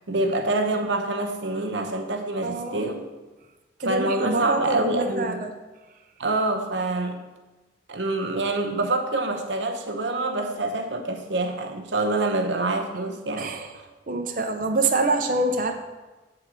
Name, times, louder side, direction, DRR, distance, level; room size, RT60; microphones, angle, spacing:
voice 1, 0.1-3.0 3.8-5.5 6.2-7.2 7.9-13.5, right 2 dB, 75° right, 4 dB, 0.9 m, -26 dB
voice 2, 2.4-2.8 3.8-5.5 13.4-13.7 14.1-15.7, right 2 dB, 45° right, 4 dB, 0.6 m, -25 dB
8.7 x 3.9 x 6.2 m, 1.2 s
head